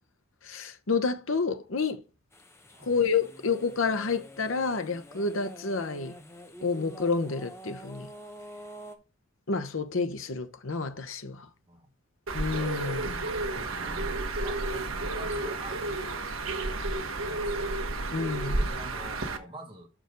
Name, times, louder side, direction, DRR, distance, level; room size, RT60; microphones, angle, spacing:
voice 1, 0.4-2.0 2.8-6.1 6.6-8.1 9.5-11.5 12.3-13.2 18.1-18.6, left 4 dB, 80° left, 0.9 m, -29 dB
sound 1, 2.3-9.0, equal, 15° left, 0.9 m, -47 dB
Bird, 12.3-19.4, right 2 dB, 85° right, 1.1 m, -31 dB
voice 2, 13.5-15.9 16.7-17.7 18.5-19.9, right 2 dB, 25° right, 1.7 m, -46 dB
6.3 x 4.9 x 5.2 m
head